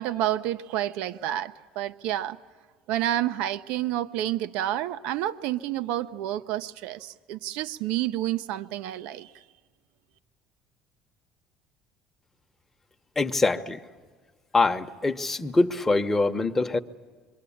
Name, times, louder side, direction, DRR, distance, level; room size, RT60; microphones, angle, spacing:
voice 1, 0.0-2.4 2.9-9.4, right 13 dB, 80° right, 12 dB, 0.7 m, -29 dB
voice 2, 13.2-13.8 14.5-16.8, left 3 dB, 15° left, 6 dB, 1.0 m, -24 dB
27.0 x 23.5 x 8.6 m, 1.5 s
cardioid pair, 135°, 2 cm